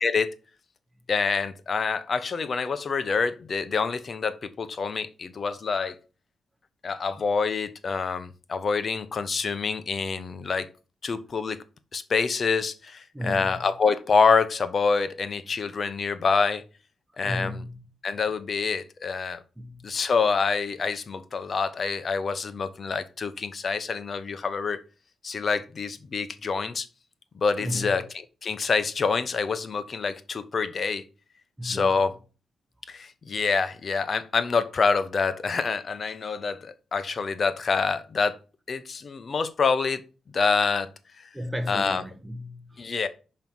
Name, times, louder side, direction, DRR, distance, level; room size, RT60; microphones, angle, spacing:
voice 1, 0.0-0.3 1.1-6.0 6.8-10.7 11.0-11.6 11.9-16.6 17.2-17.6 18.0-19.4 19.8-24.8 25.2-26.9 27.3-31.0 31.6-32.1 32.9-38.3 38.7-40.0 40.3-40.9 41.2-41.3 41.7-42.0 42.8-43.1, left 5 dB, 50° left, 0.9 m, -26 dB
voice 2, 13.1-13.6 17.2-17.8 19.6-19.8 27.6-27.9 31.6-32.1 41.3-42.9, left 1 dB, 10° right, 1.3 m, -34 dB
5.6 x 5.3 x 4.5 m
cardioid pair, 85°, 0 cm